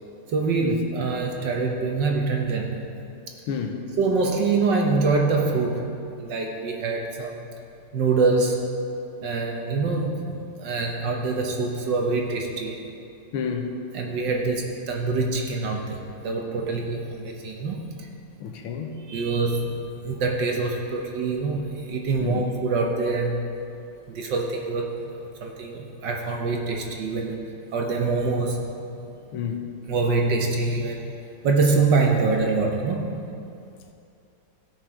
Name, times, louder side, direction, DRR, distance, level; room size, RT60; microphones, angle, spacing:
voice 1, 0.3-2.8 4.0-5.9 6.2-7.5 7.9-8.7 9.2-12.8 13.9-18.1 19.0-19.8 20.0-23.4 24.1-27.4 27.7-28.6 29.9-31.2 31.4-33.3, right 3 dB, 60° right, 1 dB, 1.5 m, -25 dB
voice 2, 3.5-3.8 13.3-13.7 18.4-19.0 22.2-22.4 29.3-29.6, left 7 dB, 75° left, 4 dB, 1.7 m, -29 dB
15.5 x 6.2 x 4.9 m, 2.6 s
omnidirectional pair, 2.4 m